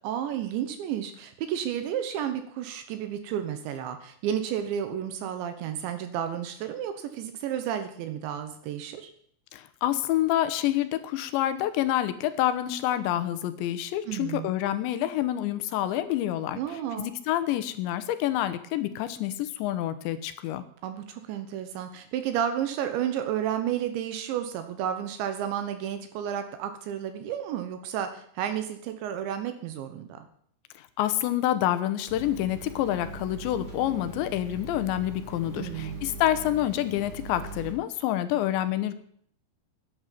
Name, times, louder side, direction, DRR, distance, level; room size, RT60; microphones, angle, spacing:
voice 1, 0.0-9.1 14.1-14.5 16.5-17.1 20.8-30.3 35.5-36.0, right 9 dB, 80° right, 8 dB, 3.4 m, -32 dB
voice 2, 9.5-16.6 17.0-20.6 30.8-38.9, left 13 dB, 80° left, 12 dB, 3.2 m, -27 dB
sound 1, 32.1-37.7, right 2 dB, 15° right, 3.5 m, -41 dB
10.5 x 9.7 x 9.2 m, 0.63 s
omnidirectional pair, 5.2 m